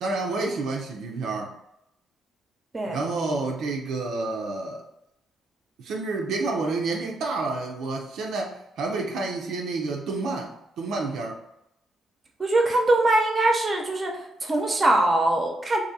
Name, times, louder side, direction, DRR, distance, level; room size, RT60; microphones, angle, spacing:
voice 1, 0.0-1.5 2.9-4.8 5.8-11.4, right 3 dB, 75° right, 0 dB, 0.5 m, -29 dB
voice 2, 12.4-15.8, right 2 dB, 25° right, 1 dB, 0.8 m, -22 dB
2.7 x 2.6 x 3.9 m, 0.82 s
cardioid pair, 90°, 0 cm